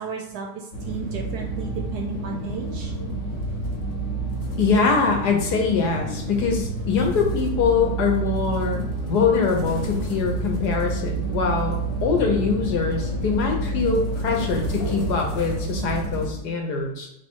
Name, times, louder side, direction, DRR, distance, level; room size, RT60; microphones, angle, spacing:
voice 1, 0.0-2.9, right 5 dB, 70° right, 2 dB, 1.0 m, -33 dB
sound 1, 0.7-16.3, right 2 dB, 50° left, 1.0 m, -29 dB
voice 2, 4.6-17.1, left 5 dB, 65° left, 1 dB, 1.2 m, -23 dB
3.2 x 3.0 x 4.4 m, 0.86 s
omnidirectional pair, 2.0 m